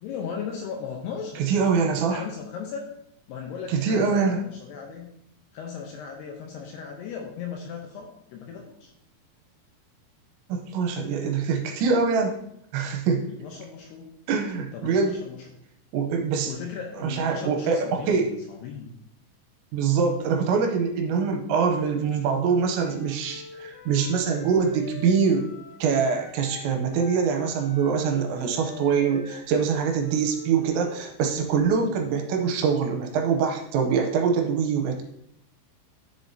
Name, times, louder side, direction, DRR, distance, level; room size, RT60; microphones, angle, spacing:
voice 1, 0.0-1.4 2.1-2.8 3.3-5.1 5.5-8.9 13.4-14.1 14.7-15.4 16.5-18.2 18.5-18.9, left 6 dB, 75° left, 1 dB, 2.5 m, -37 dB
voice 2, 1.4-2.2 3.7-4.4 10.5-12.4 12.7-13.3 14.3-15.1 15.9-16.5 17.0-18.4 19.7-25.5 25.8-35.0, right 5 dB, 80° right, 3 dB, 3.0 m, -24 dB
Wind instrument woodwind instrument, 22.6-26.6 26.9-31.1, left 6 dB, 55° left, 1.5 m, -45 dB
10.0 x 6.8 x 2.7 m, 0.76 s
omnidirectional pair, 5.5 m